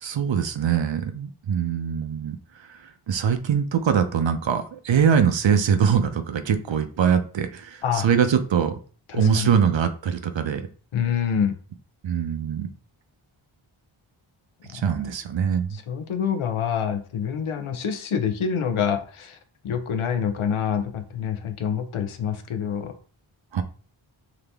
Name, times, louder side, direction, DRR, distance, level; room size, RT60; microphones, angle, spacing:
voice 1, 0.0-2.4 3.1-8.7 9.1-10.6 12.0-12.7 14.7-15.8 23.5-23.6, right 7 dB, 65° right, 8 dB, 0.6 m, -22 dB
voice 2, 9.1-9.5 10.9-11.5 14.9-15.0 15.7-19.4 19.6-22.9, left 7 dB, 85° left, 8 dB, 0.7 m, -26 dB
3.9 x 2.8 x 3.4 m, 0.40 s
wide cardioid pair, 65°, 49 cm